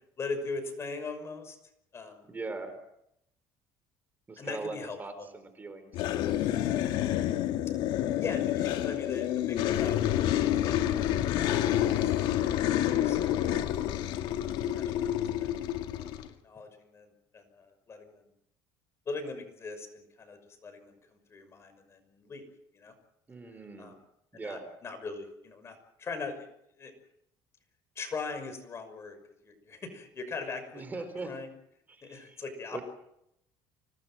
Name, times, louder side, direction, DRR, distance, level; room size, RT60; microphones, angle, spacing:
voice 1, 0.2-1.6 1.9-2.2 4.4-5.3 8.2-10.0 10.6-12.3 12.7-13.7 14.1-14.3 14.7-15.6 15.9-16.1 16.4-18.2 19.1-22.5 22.7-22.9 23.8-24.0 24.3-26.5 26.8-26.9 28.0-29.2 29.4-31.5 32.0-32.8, left 4 dB, 35° left, 8 dB, 6.0 m, -40 dB
voice 2, 2.3-2.7 4.3-6.8 23.3-23.9 24.3-24.7 30.7-31.3 31.9-32.4 32.7-32.8, right 3 dB, 20° right, 8 dB, 4.4 m, -41 dB
sound 1, 5.9-16.3, left 12 dB, 75° left, 2.1 m, -28 dB
25.5 x 19.5 x 7.6 m, 0.80 s
cardioid pair, 110°, 8 cm